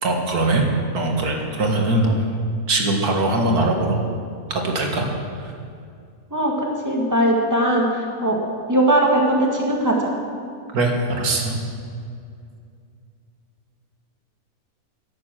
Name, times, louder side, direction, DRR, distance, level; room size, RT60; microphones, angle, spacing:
voice 1, 0.0-0.6 0.9-2.1 2.7-4.0 4.5-5.1 5.4-5.5 10.7-11.5, right 2 dB, 85° right, 1 dB, 2.3 m, -21 dB
voice 2, 6.3-8.4 8.7-10.1, right 1 dB, 10° right, -1 dB, 2.0 m, -20 dB
12.5 x 11.5 x 7.6 m, 2.3 s
omnidirectional pair, 1.6 m